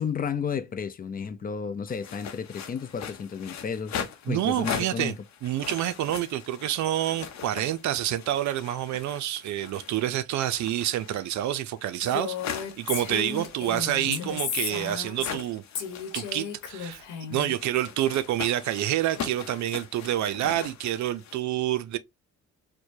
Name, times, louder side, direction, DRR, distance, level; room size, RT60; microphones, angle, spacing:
voice 1, 0.0-5.2 14.1-14.3, left 6 dB, 30° left, 0.5 m, -32 dB
sound 1, 1.9-10.1 10.4-21.4, left 7 dB, 65° left, 0.8 m, -40 dB
voice 2, 4.3-5.1 5.4-15.6 16.1-17.0 17.3-22.0, right 12 dB, 70° right, 0.5 m, -28 dB
Female speech woman speaking, 12.0-15.4 15.7-17.5, left 7 dB, 80° left, 1.1 m, -34 dB
4.5 x 2.2 x 2.7 m
cardioid pair, 90°, 30 cm